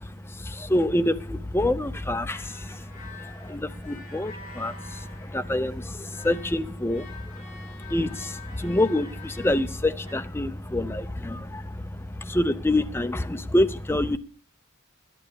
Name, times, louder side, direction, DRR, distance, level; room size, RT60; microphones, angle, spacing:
voice 1, 0.0-14.2, left 1 dB, 10° left, 10 dB, 0.6 m, -27 dB
sound 1, 2.3-5.8 6.1-10.1, left 4 dB, 35° left, 6.0 m, -47 dB
12.0 x 8.6 x 6.8 m, 0.44 s
head